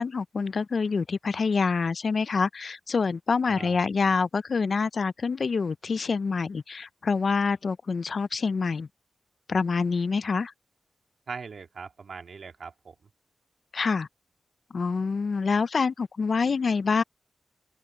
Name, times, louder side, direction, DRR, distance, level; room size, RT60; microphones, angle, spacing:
voice 1, 0.0-8.9 9.5-10.5 13.7-14.1 14.7-17.0, left 4 dB, 50° left, 0.3 m, -26 dB
voice 2, 3.4-3.9 11.3-13.0, right 5 dB, 55° right, 2.0 m, -40 dB
wide cardioid pair, 160°, 0 cm